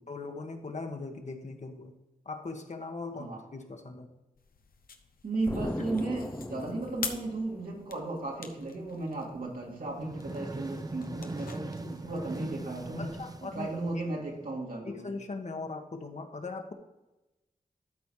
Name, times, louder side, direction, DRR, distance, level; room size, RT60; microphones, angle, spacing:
voice 1, 0.1-1.9 2.2-4.1 13.0-13.7 13.9-14.0 14.8-16.7, left 3 dB, 55° left, 4 dB, 1.3 m, -39 dB
sound 1, 4.3-13.2, left 5 dB, 85° left, 0.8 m, -46 dB
voice 2, 5.2-13.1 13.4-15.1, right 2 dB, 75° right, -2 dB, 2.5 m, -35 dB
Explosion, 5.5-8.1, left 2 dB, 15° left, 0.5 m, -38 dB
sound 2, 9.9-14.4, right 2 dB, 25° right, 0.7 m, -40 dB
12.5 x 4.3 x 4.8 m, 1.0 s
cardioid pair, 55°, 15 cm